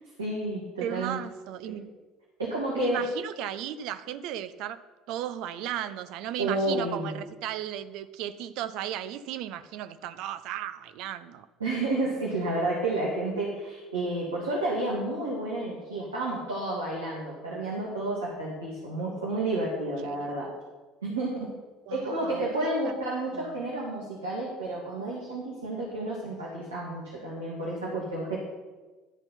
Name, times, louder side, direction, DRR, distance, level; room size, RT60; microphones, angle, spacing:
voice 1, 0.2-1.2 2.4-3.0 6.4-7.2 11.6-20.5 21.0-21.5 21.9-28.4, right 2 dB, 85° right, -5 dB, 1.7 m, -31 dB
voice 2, 0.8-1.9 2.7-4.8 5.1-11.5 20.0-20.2 21.9-22.9 23.3-23.6, right 11 dB, 60° right, 13 dB, 0.5 m, -35 dB
12.0 x 4.4 x 5.7 m, 1.2 s
figure-of-eight pair, 60°, 0 cm